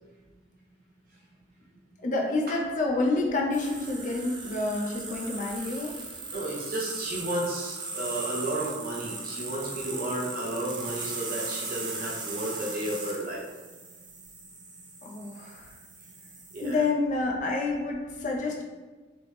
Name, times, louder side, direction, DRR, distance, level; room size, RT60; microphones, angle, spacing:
voice 1, 2.0-5.9 15.0-15.7 16.6-18.6, left 2 dB, 45° left, 0 dB, 0.4 m, -28 dB
sound 1, 3.5-16.7, right 3 dB, 25° right, 0.5 m, -38 dB
voice 2, 6.3-13.4 16.5-16.8, right 1 dB, 50° right, -3 dB, 0.8 m, -33 dB
3.2 x 2.9 x 3.2 m, 1.3 s
head